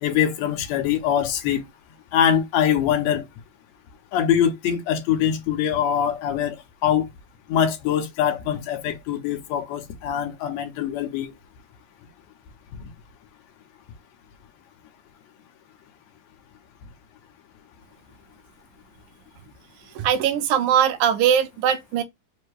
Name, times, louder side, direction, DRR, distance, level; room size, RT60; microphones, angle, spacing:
voice 1, 0.0-1.6 2.1-3.3 4.1-6.6 6.8-7.1 7.5-11.3 12.8-12.9, left 9 dB, 70° left, 1.9 m, -23 dB
voice 2, 20.0-22.0, right 9 dB, 85° right, 2.1 m, -20 dB
5.2 x 2.2 x 4.6 m
omnidirectional pair, 3.5 m